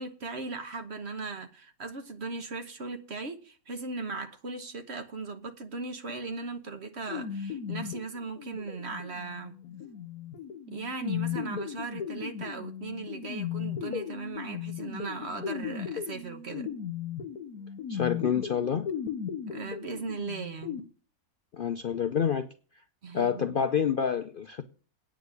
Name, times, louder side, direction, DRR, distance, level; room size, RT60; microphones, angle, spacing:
voice 1, 0.0-9.5 10.7-16.7 19.5-20.8 23.0-23.6, right 3 dB, 50° right, 1.4 m, -38 dB
sound 1, 7.1-20.8, left 8 dB, 80° left, 1.5 m, -36 dB
voice 2, 17.9-18.9 21.5-22.5 23.1-24.6, left 7 dB, 55° left, 0.6 m, -28 dB
9.2 x 7.6 x 8.1 m
omnidirectional pair, 1.5 m